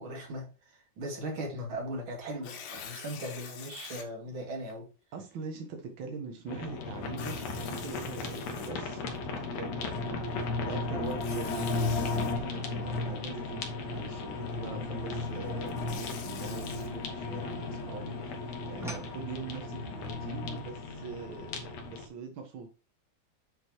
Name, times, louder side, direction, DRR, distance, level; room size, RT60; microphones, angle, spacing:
voice 1, 0.0-4.9, right 1 dB, 40° right, 2.3 m, -38 dB
Tearing, 2.3-4.1 4.7-4.8 7.1-9.2 11.1-12.3 15.5-16.9, left 7 dB, 85° left, 3.4 m, -46 dB
voice 2, 5.1-22.7, right 4 dB, 80° right, 1.1 m, -43 dB
sound 1, 6.5-22.1, left 3 dB, 60° left, 2.0 m, -35 dB
sound 2, 14.8-17.7 18.0-19.2, right 1 dB, ahead, 1.3 m, -50 dB
8.0 x 4.2 x 4.6 m
omnidirectional pair, 4.3 m